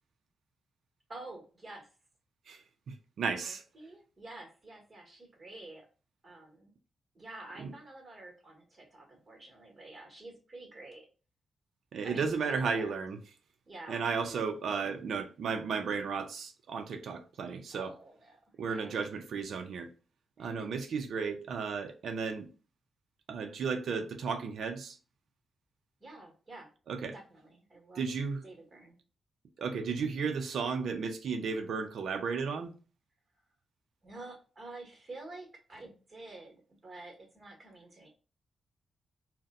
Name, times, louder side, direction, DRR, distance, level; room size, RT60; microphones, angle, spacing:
voice 1, 1.1-1.9 3.4-5.9 6.2-6.7 7.1-11.1 12.0-13.1 13.7-14.4 17.7-19.0 20.4-20.7 26.0-26.7 27.1-28.1 28.4-29.0 34.0-38.1, right 2 dB, 30° right, 1.4 m, -49 dB
voice 2, 2.5-3.6 7.6-7.7 11.9-13.2 13.9-17.9 18.6-19.9 20.4-22.5 23.3-25.0 26.9-27.1 28.0-28.4 29.6-32.7, right 5 dB, 70° right, 0.6 m, -34 dB
4.1 x 2.2 x 3.6 m
wide cardioid pair, 150°, 0 cm